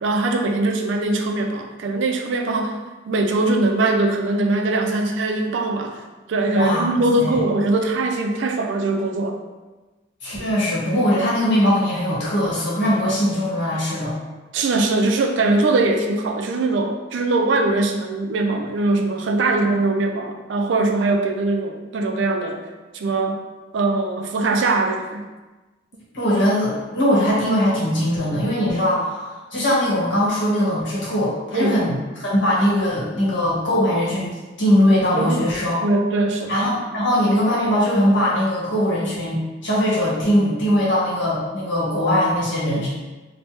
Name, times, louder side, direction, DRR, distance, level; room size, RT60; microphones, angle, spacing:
voice 1, 0.0-2.8 3.1-6.0 6.3-9.4 14.5-22.6 22.9-23.4 23.7-25.3 31.5-31.8 35.1-35.5 35.8-36.5, right 2 dB, 70° right, 4 dB, 0.4 m, -21 dB
voice 2, 6.5-7.4 10.2-14.1 26.1-35.8 36.5-42.9, equal, 75° left, -7 dB, 1.1 m, -21 dB
3.1 x 2.1 x 3.0 m, 1.2 s
head